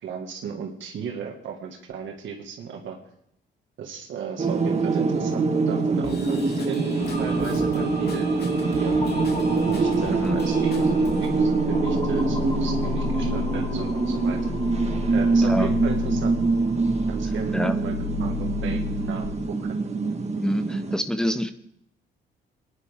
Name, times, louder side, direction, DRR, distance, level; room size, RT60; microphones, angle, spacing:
voice 1, 0.0-3.0 3.8-8.3 8.8-9.0 9.7-10.9 11.2-14.4 15.1-16.3 17.1-19.8, right 7 dB, 75° right, 1 dB, 2.0 m, -36 dB
sound 1, 4.4-21.0, right 3 dB, 35° right, 1.6 m, -24 dB
Drum kit / Drum, 6.0-11.4, left 3 dB, 55° left, 3.0 m, -40 dB
sound 2, 7.0-19.3, left 4 dB, 35° left, 6.1 m, -33 dB
voice 2, 15.4-15.7 17.5-17.8 20.4-21.5, equal, 5° left, 10 dB, 1.0 m, -26 dB
24.0 x 10.5 x 3.7 m, 0.76 s
cardioid pair, 90°, 20 cm